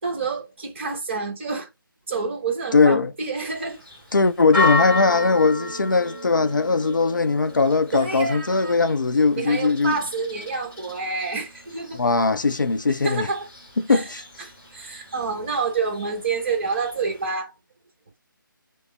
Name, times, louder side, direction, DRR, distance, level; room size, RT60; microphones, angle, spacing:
voice 1, 0.0-1.7 2.1-3.8 7.9-8.8 9.4-12.0 13.0-13.5 13.9-14.0 14.7-17.5, right 4 dB, 35° right, 1.1 m, -28 dB
voice 2, 2.7-3.1 4.1-10.0 11.9-13.3 13.8-14.2, left 4 dB, 60° left, 0.5 m, -20 dB
Church bell, 3.5-17.3, left 3 dB, 5° left, 1.3 m, -33 dB
5.1 x 2.0 x 3.2 m
figure-of-eight pair, 155°, 12 cm